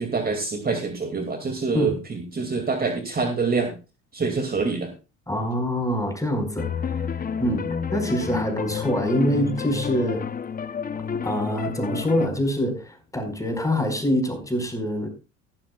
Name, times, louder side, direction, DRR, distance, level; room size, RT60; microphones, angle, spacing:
voice 1, 0.0-3.7 4.1-4.9, right 4 dB, 25° right, 2.4 m, -26 dB
voice 2, 5.3-6.7 7.4-10.3 11.2-15.1, equal, 10° left, 4.7 m, -25 dB
sound 1, 6.6-12.3, left 7 dB, 25° left, 0.8 m, -30 dB
14.5 x 12.0 x 2.3 m
hypercardioid pair, 70°, 36 cm